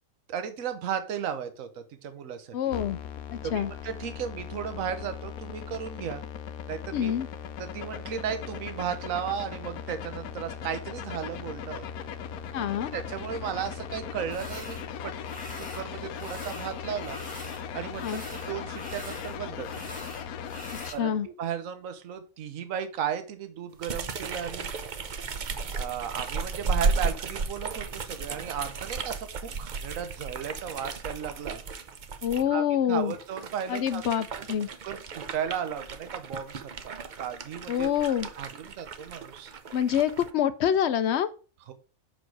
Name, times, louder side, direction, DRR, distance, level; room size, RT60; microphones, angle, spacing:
voice 1, 0.3-2.5 3.4-6.2 6.7-7.1 7.6-11.9 12.9-15.1 15.6-17.2 17.7-19.9 20.9-24.7 25.7-31.6 32.5-34.0 34.8-37.9 38.3-39.5 41.7-41.8, right 8 dB, 65° right, 1.3 m, -35 dB
voice 2, 2.5-3.0 3.3-3.7 6.9-7.3 12.5-12.9 18.0-18.2 20.8-21.3 32.2-33.1 33.7-34.7 37.7-38.3 39.7-41.3, left 9 dB, 65° left, 0.7 m, -26 dB
sound 1, 2.7-20.9, left 8 dB, 80° left, 1.1 m, -38 dB
sound 2, 14.3-14.9 15.2-15.9 16.1-17.6 17.9-21.0, right 1 dB, 5° right, 1.6 m, -44 dB
sound 3, 23.8-32.4 33.0-40.3, right 4 dB, 50° right, 0.6 m, -34 dB
6.3 x 4.8 x 4.7 m
omnidirectional pair, 1.5 m